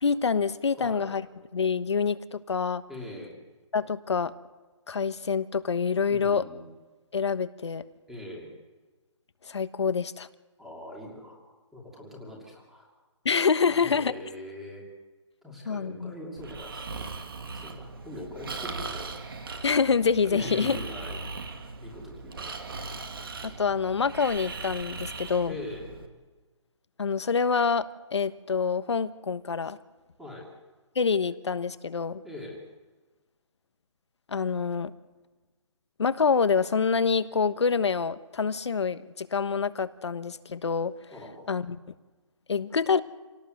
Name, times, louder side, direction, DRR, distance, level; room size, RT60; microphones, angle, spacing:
voice 1, 0.0-1.2 1.5-2.8 3.7-4.3 4.9-6.4 7.1-7.8 9.5-10.3 13.2-14.1 15.7-16.1 19.6-20.8 23.4-25.5 27.0-29.8 30.9-32.2 34.3-34.9 36.0-40.9 41.5-41.8 42.5-43.0, left 5 dB, 60° left, 13 dB, 1.2 m, -26 dB
voice 2, 0.8-1.1 2.9-3.4 6.1-6.6 8.1-8.5 10.6-11.4 11.7-12.9 13.6-14.9 15.4-17.0 17.6-19.1 20.3-21.2 21.8-22.7 25.5-26.0 30.2-30.5 32.2-32.6 41.1-41.5, left 1 dB, ahead, -2 dB, 2.6 m, -42 dB
Breathing, 16.4-26.1, right 3 dB, 45° right, 2.5 m, -39 dB
27.5 x 18.0 x 7.9 m, 1.2 s
hypercardioid pair, 180°, 17 cm